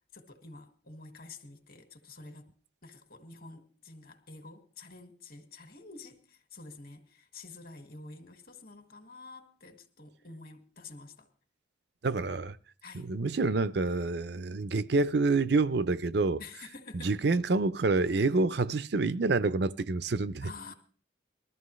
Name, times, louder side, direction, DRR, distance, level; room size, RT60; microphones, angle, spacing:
voice 1, 0.1-2.5 2.8-11.3 12.8-13.1 16.4-17.1 20.4-20.7, left 3 dB, 50° left, 1.9 m, -49 dB
voice 2, 12.0-12.6 12.9-16.4 16.9-20.5, right 3 dB, 60° right, 0.5 m, -27 dB
20.5 x 13.5 x 3.2 m
head